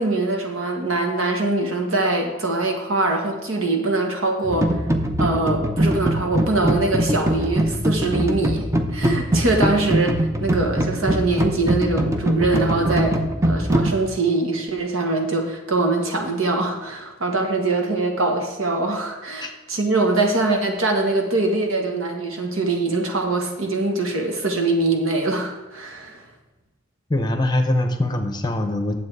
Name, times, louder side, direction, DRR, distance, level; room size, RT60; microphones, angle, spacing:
voice 1, 0.0-4.8 5.2-8.7 8.9-13.2 13.5-26.2, right 2 dB, 85° right, 3 dB, 1.6 m, -23 dB
sound 1, 4.4-13.9, right 1 dB, 15° right, 0.6 m, -22 dB
voice 2, 27.1-28.9, left 1 dB, 20° left, 6 dB, 0.8 m, -22 dB
9.2 x 7.3 x 4.8 m, 1.2 s
head